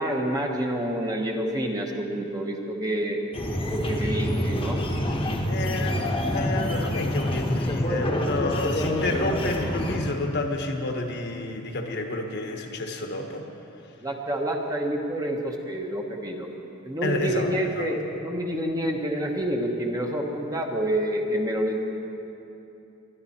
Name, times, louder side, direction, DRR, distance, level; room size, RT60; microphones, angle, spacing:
voice 1, 0.0-3.2 3.7-4.8 14.0-16.5 16.8-21.8, right 1 dB, 15° right, 1 dB, 1.2 m, -28 dB
sound 1, 3.3-10.0, left 1 dB, 25° left, 1.1 m, -27 dB
voice 2, 5.5-13.4 17.0-17.5 17.8-17.9, left 2 dB, 55° left, 3 dB, 1.3 m, -30 dB
21.0 x 11.5 x 4.3 m, 2.8 s
head